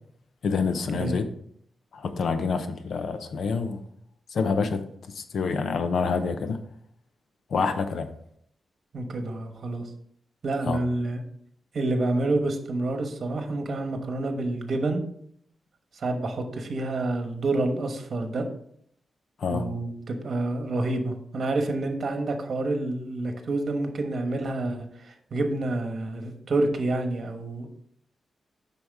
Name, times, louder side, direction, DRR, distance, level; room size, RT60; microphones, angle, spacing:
voice 1, 0.4-1.2 1.9-3.8 4.3-4.8 5.1-6.6 7.5-8.1 10.6-10.8 19.4-19.7, left 5 dB, 70° left, 9 dB, 0.8 m, -27 dB
voice 2, 8.9-9.8 10.4-11.2 11.7-15.0 16.0-18.5 19.5-27.7, right 2 dB, 55° right, 5 dB, 1.2 m, -28 dB
7.9 x 5.9 x 3.6 m, 0.67 s
wide cardioid pair, 125°, 0 cm